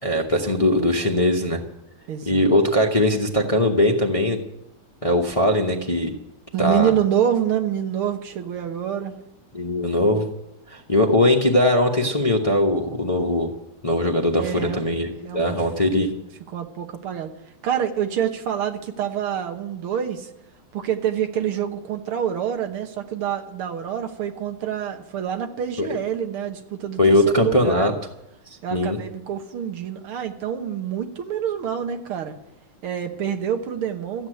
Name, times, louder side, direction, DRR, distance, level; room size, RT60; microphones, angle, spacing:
voice 1, 0.0-1.6 2.3-4.4 5.0-6.1 6.6-6.9 9.5-10.3 10.7-13.5 13.8-15.1 15.3-16.1 25.8-25.9 27.0-27.9 28.7-29.0, left 1 dB, 25° left, 1 dB, 0.8 m, -20 dB
voice 2, 2.1-2.5 6.5-9.1 14.3-14.9 15.2-15.6 16.5-17.3 17.6-20.3 20.7-27.9 28.6-32.3 32.8-34.3, right 9 dB, 80° right, 6 dB, 2.1 m, -26 dB
14.0 x 8.1 x 9.1 m, 0.86 s
omnidirectional pair, 2.3 m